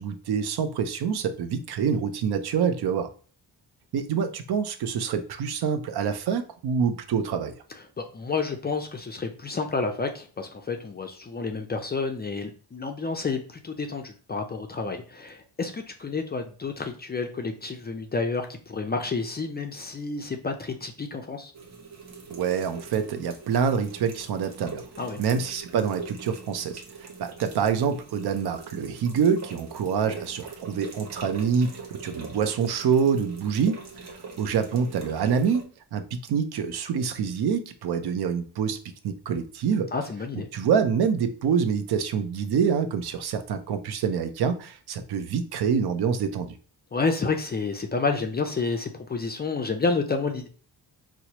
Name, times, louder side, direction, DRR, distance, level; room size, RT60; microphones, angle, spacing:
voice 1, 0.0-3.1 3.9-7.5 22.3-24.8 25.2-33.8 34.1-38.8 39.0-39.9 40.5-46.5, right 6 dB, 70° right, 9 dB, 0.6 m, -26 dB
voice 2, 8.0-21.5 25.0-25.2 30.1-30.2 39.9-40.5 46.9-50.5, left 4 dB, 25° left, 4 dB, 0.3 m, -30 dB
sound 1, 21.5-35.6, right 4 dB, 40° right, 0.7 m, -43 dB
4.4 x 2.0 x 2.8 m, 0.40 s
cardioid pair, 120°, 41 cm